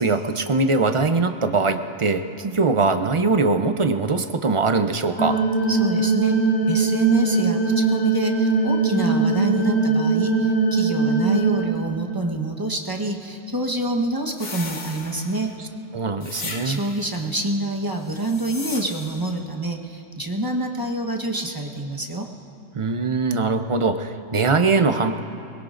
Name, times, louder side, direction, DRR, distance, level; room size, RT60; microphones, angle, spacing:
voice 1, 0.0-5.4 15.9-16.8 22.7-25.2, right 3 dB, 45° right, 7 dB, 0.4 m, -21 dB
sound 1, 5.2-11.6, right 3 dB, 15° left, 2.3 m, -21 dB
voice 2, 5.7-6.4 6.7-15.5 16.6-22.3, right 1 dB, 20° right, 1 dB, 1.0 m, -26 dB
sound 2, 14.4-15.6 16.2-17.1 18.0-19.3, left 3 dB, 70° left, 1.6 m, -36 dB
22.0 x 21.0 x 2.5 m, 2.6 s
omnidirectional pair, 1.3 m